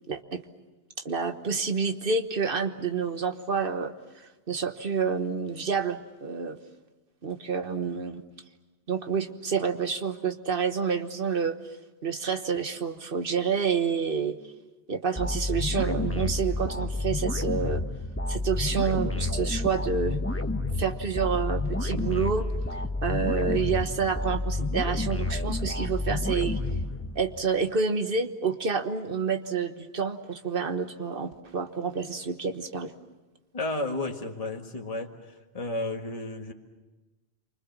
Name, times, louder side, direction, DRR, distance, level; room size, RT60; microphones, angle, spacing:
voice 1, 0.1-0.4 1.0-3.9 4.5-6.6 7.2-8.2 8.9-11.6 12.0-14.4 14.9-17.8 18.3-20.2 20.8-26.6 27.1-32.9, right 5 dB, 60° right, 7 dB, 1.5 m, -28 dB
sound 1, 15.2-27.4, left 2 dB, 15° left, 1.1 m, -30 dB
voice 2, 33.5-35.1 35.5-36.5, left 2 dB, 35° left, 2 dB, 1.8 m, -32 dB
28.0 x 25.0 x 7.4 m, 1.2 s
omnidirectional pair, 1.1 m